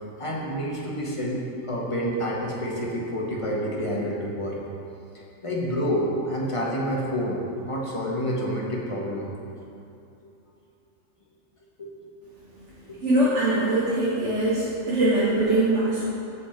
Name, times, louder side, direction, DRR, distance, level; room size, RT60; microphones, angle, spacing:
voice 1, 0.2-4.6 5.4-7.4 7.7-9.3 9.6-9.7 11.8-11.9 13.1-13.3, equal, 25° left, -4 dB, 1.4 m, -28 dB
voice 2, 13.0-16.0, right 1 dB, 65° right, -8 dB, 1.8 m, -22 dB
12.5 x 5.4 x 4.5 m, 2.6 s
omnidirectional pair, 1.3 m